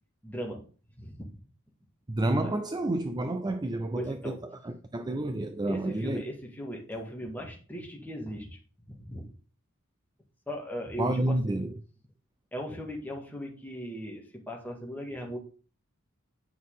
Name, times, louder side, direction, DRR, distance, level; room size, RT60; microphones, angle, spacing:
voice 1, 0.2-0.7 1.0-1.3 2.4-2.5 3.9-4.4 5.7-8.6 8.9-9.3 10.5-11.4 12.5-15.4, equal, 10° left, 2.0 m, -38 dB
voice 2, 2.1-6.2 11.0-11.8, right 1 dB, 20° right, 0.5 m, -30 dB
9.2 x 6.1 x 3.8 m
head